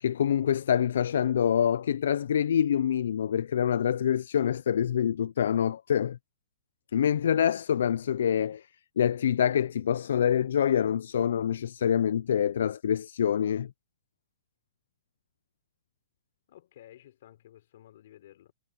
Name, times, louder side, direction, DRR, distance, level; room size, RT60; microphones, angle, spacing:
voice 1, 0.0-6.2 6.9-8.7 9.0-13.7, left 9 dB, 75° left, 0.4 m, -26 dB
voice 2, 16.5-18.5, left 12 dB, 55° left, 4.4 m, -53 dB
hypercardioid pair, 170°, 0 cm